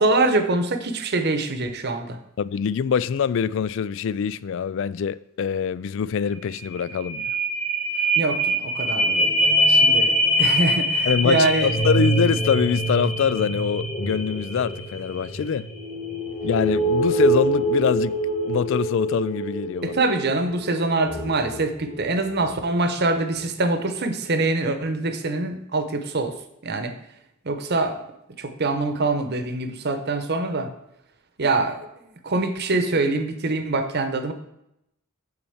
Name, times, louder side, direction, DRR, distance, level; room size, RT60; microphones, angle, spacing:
voice 1, 0.0-2.2 8.2-9.4 9.6-11.7 19.8-26.3 26.6-26.9 27.4-28.1 28.4-30.7 31.4-31.8 32.2-34.3, right 2 dB, 50° right, 0.9 m, -24 dB
voice 2, 2.4-7.3 11.1-15.7 16.4-18.2 18.5-20.0, left 7 dB, 65° left, 0.3 m, -24 dB
sound 1, 6.3-6.4 6.7-22.6 23.1-23.2, right 1 dB, 30° left, 2.1 m, -24 dB
8.6 x 4.2 x 7.1 m
head